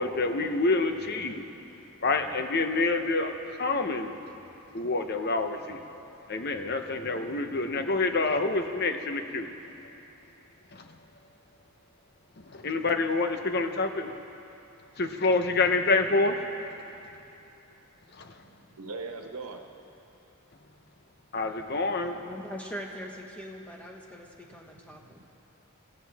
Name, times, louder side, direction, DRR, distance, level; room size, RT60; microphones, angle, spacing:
voice 1, 0.0-1.5 2.0-4.2 4.7-5.9 6.3-9.5 10.7-10.9 12.4-14.1 15.0-16.5 18.1-18.4 21.3-22.2, left 3 dB, 45° left, 6 dB, 0.9 m, -27 dB
voice 2, 18.2-19.6 24.9-25.2, right 3 dB, 90° right, 3 dB, 1.3 m, -41 dB
voice 3, 22.2-25.2, equal, 5° left, 0 dB, 1.4 m, -41 dB
25.5 x 15.5 x 3.5 m, 2.8 s
head